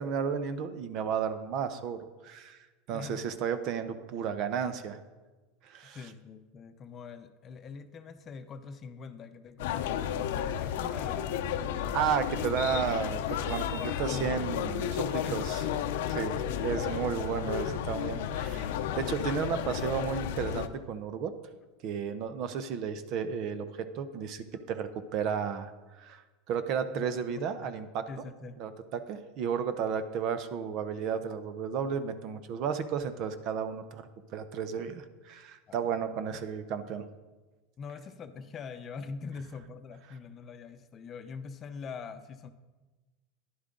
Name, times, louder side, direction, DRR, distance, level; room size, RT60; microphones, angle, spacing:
voice 1, 0.0-2.6 2.9-5.0 5.6-6.0 11.9-13.2 13.5-15.6 16.1-21.3 21.8-23.7 23.9-25.7 26.0-26.2 26.5-28.0 28.6-37.0, right 7 dB, 50° right, 11 dB, 0.8 m, -33 dB
voice 2, 2.9-3.3 5.8-11.3 12.3-12.4 13.8-15.6 16.5-17.1 18.8-19.5 26.7-27.1 27.6-27.8 28.1-28.6 35.7-35.9 37.8-42.5, left 5 dB, 35° left, 9 dB, 0.7 m, -43 dB
sound 1, 9.6-20.7, left 9 dB, 75° left, 0.6 m, -32 dB
11.0 x 10.5 x 3.8 m, 1.2 s
supercardioid pair, 115°, 0 cm